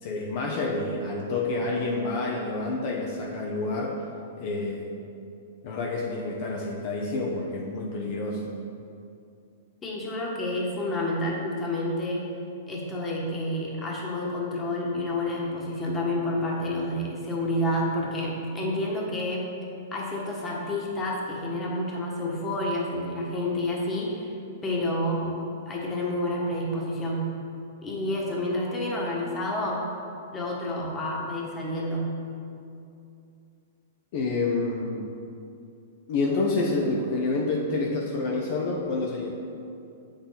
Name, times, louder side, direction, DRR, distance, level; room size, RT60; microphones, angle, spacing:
voice 1, 0.0-4.0 4.4-4.9 5.6-8.5 34.1-35.1 36.1-39.3, left 3 dB, 45° left, -1 dB, 0.9 m, -28 dB
voice 2, 9.8-12.2 12.7-19.5 19.9-24.3 24.6-25.4 25.6-27.3 27.8-29.8 30.3-32.1, left 1 dB, 15° left, -3 dB, 1.4 m, -29 dB
7.7 x 6.4 x 4.1 m, 2.6 s
hypercardioid pair, 150°, 0 cm